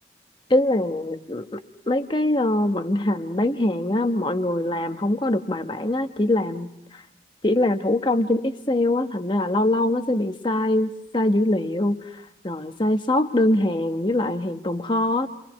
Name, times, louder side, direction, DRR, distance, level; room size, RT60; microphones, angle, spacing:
voice 1, 0.5-1.6 1.9-7.0 7.4-12.0 12.4-15.3, left 1 dB, 25° left, 7 dB, 1.2 m, -23 dB
30.0 x 24.5 x 5.3 m, 0.83 s
head